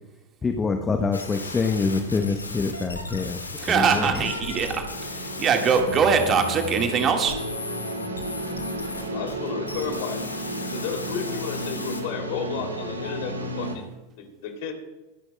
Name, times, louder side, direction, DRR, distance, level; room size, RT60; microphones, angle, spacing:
voice 1, 0.4-3.4 3.7-4.3, left 4 dB, 15° left, 5 dB, 0.9 m, -25 dB
sound 1, 1.1-12.0, left 2 dB, 75° left, 1.6 m, -36 dB
sound 2, 3.0-13.8, right 1 dB, 75° right, 1.9 m, -34 dB
voice 2, 3.6-4.8 5.2-7.4, right 6 dB, 30° right, 4 dB, 1.6 m, -22 dB
voice 3, 9.1-10.3 10.7-13.9 14.2-14.7, left 6 dB, 50° left, 4 dB, 2.7 m, -32 dB
25.0 x 11.0 x 2.2 m, 1.1 s
figure-of-eight pair, 90°, 0 cm